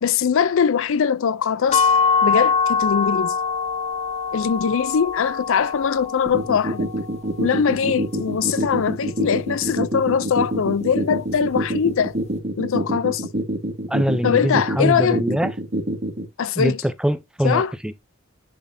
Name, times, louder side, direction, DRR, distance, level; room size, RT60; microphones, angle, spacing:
voice 1, 0.0-1.9 2.2-3.4 4.3-6.9 7.4-12.2 12.6-13.3 14.2-15.2 16.4-16.8 17.4-17.7, left 7 dB, 65° left, 0.4 m, -21 dB
sound 1, 1.7-7.5, left 5 dB, 35° left, 1.0 m, -23 dB
sound 2, 6.3-16.3, right 1 dB, 50° right, 2.2 m, -25 dB
voice 2, 13.9-15.5 16.6-18.0, equal, 5° right, 0.5 m, -23 dB
10.0 x 4.1 x 2.6 m
head